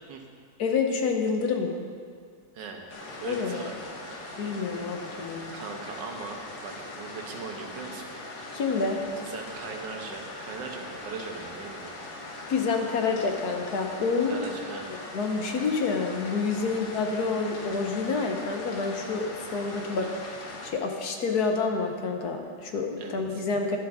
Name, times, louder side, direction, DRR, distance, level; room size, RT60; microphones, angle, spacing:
voice 1, 0.6-1.8 3.2-3.7 4.4-5.5 8.5-9.0 12.5-14.4 15.1-19.2 19.5-20.1 20.4-23.8, left 4 dB, 65° left, 3 dB, 1.3 m, -28 dB
sound 1, 2.9-20.7, left 2 dB, 80° left, 2.0 m, -40 dB
voice 2, 3.2-4.0 5.5-8.1 9.2-11.9 14.3-14.9 16.7-16.8 23.0-23.4, right 4 dB, 80° right, 2 dB, 1.7 m, -39 dB
11.5 x 10.5 x 3.6 m, 2.1 s
omnidirectional pair, 1.9 m